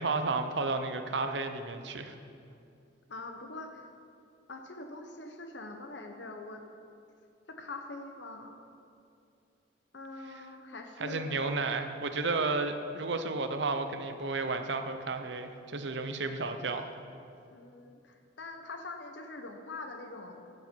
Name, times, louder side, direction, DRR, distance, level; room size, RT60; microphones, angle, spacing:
voice 1, 0.0-2.1 11.0-16.9, right 3 dB, 65° right, 7 dB, 0.8 m, -32 dB
voice 2, 3.1-3.8 4.5-6.6 7.5-8.6 9.9-11.5 17.5-20.7, left 2 dB, 65° left, 5 dB, 0.9 m, -44 dB
15.5 x 8.1 x 4.6 m, 2.5 s
head